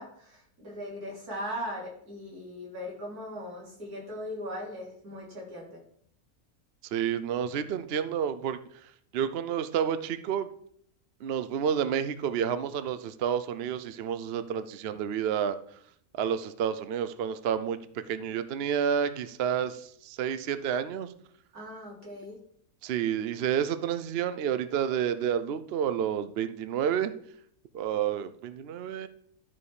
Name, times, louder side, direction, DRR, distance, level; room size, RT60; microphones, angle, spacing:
voice 1, 0.0-5.8 21.5-22.4, equal, 85° right, -4 dB, 4.1 m, -39 dB
voice 2, 6.9-10.5 11.2-15.6 16.2-21.1 22.8-27.1 27.7-29.1, right 8 dB, 60° right, 12 dB, 0.7 m, -30 dB
12.5 x 5.0 x 4.9 m, 0.65 s
omnidirectional pair, 1.6 m